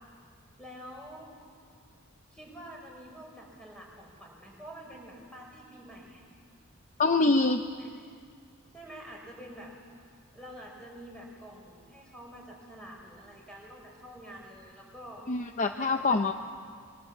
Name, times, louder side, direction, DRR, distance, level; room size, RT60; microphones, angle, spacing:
voice 1, 0.6-1.4 2.3-6.3 7.8-7.9 8.7-9.7 10.3-15.3 15.8-16.3, equal, 5° left, -2 dB, 5.5 m, -47 dB
voice 2, 7.0-7.6 15.3-16.3, left 3 dB, 35° left, 6 dB, 0.7 m, -25 dB
24.0 x 23.5 x 7.4 m, 2.1 s
head